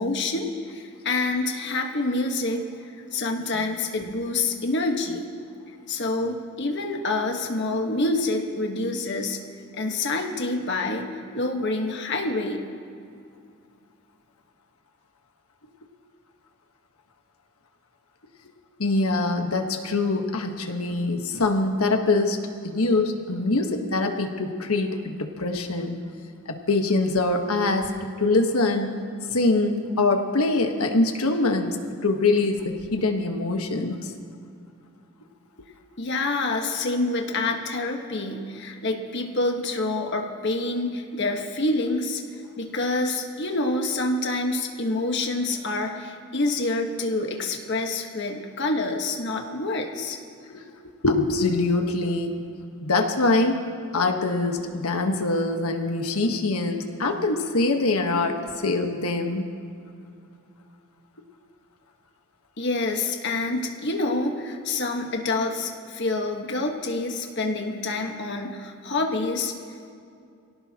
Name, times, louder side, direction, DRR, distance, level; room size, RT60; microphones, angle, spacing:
voice 1, 0.0-2.7 3.1-5.3 5.9-9.4 9.7-11.1 11.3-12.7 36.0-42.2 42.6-50.2 62.6-69.5, left 2 dB, 50° left, 3 dB, 1.4 m, -27 dB
voice 2, 18.8-22.4 22.6-26.0 26.5-27.9 28.2-28.9 29.3-31.8 32.0-34.1 50.5-50.6 51.0-52.4 52.8-53.7 53.9-59.5, left 2 dB, 80° left, 4 dB, 1.3 m, -24 dB
23.5 x 17.5 x 2.9 m, 2.4 s
head